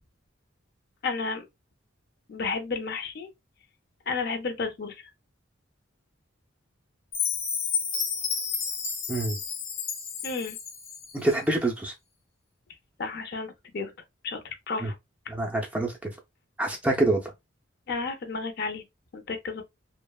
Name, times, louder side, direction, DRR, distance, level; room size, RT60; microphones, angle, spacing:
voice 1, 1.0-1.4 2.3-3.3 4.1-4.9 10.2-10.6 13.0-13.9 14.2-14.4 14.7-14.9 17.9-18.8 19.1-19.6, left 4 dB, 50° left, 0.5 m, -32 dB
Chime, 7.1-11.2, left 6 dB, 80° left, 0.8 m, -31 dB
voice 2, 11.1-11.9 14.8-14.9 15.3-16.1 16.6-17.2, right 2 dB, 5° right, 0.4 m, -26 dB
2.8 x 2.0 x 2.2 m
head